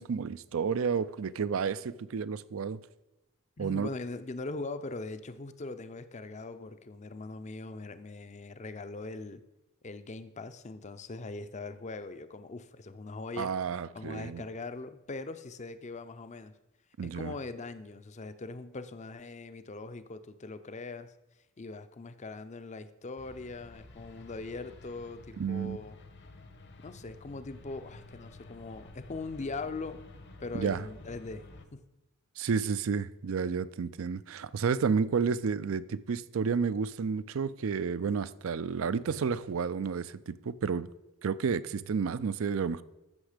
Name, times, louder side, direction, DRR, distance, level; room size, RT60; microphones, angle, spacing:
voice 1, 0.0-2.8 3.6-3.9 13.4-14.4 17.0-17.3 25.4-25.8 30.5-30.8 32.4-40.9 41.2-42.8, right 6 dB, 65° right, 0.4 m, -31 dB
voice 2, 3.6-9.4 9.8-13.5 13.9-16.5 17.0-21.1 21.6-25.9 26.8-30.0 30.4-31.5 31.7-31.8, left 3 dB, 35° left, 0.5 m, -41 dB
sound 1, 23.2-31.7, left 2 dB, 55° left, 1.0 m, -51 dB
14.0 x 6.3 x 5.0 m
head